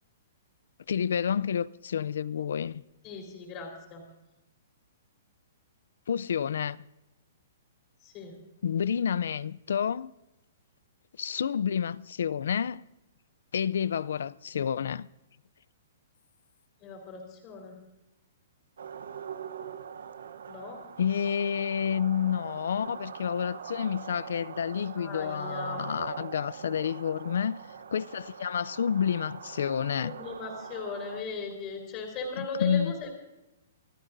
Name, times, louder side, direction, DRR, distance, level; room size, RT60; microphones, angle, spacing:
voice 1, 0.9-2.8 6.1-6.8 8.6-10.1 11.2-12.8 13.5-15.1 21.0-27.6 27.9-30.2 32.4-33.0, left 8 dB, 75° left, 0.4 m, -29 dB
voice 2, 3.0-4.0 8.0-8.3 16.8-17.7 20.5-20.8 25.0-25.8 30.0-33.2, left 4 dB, 25° left, 4.0 m, -38 dB
sound 1, 18.8-31.2, right 7 dB, 85° right, 0.9 m, -43 dB
27.0 x 14.0 x 2.6 m
hypercardioid pair, 170°, 0 cm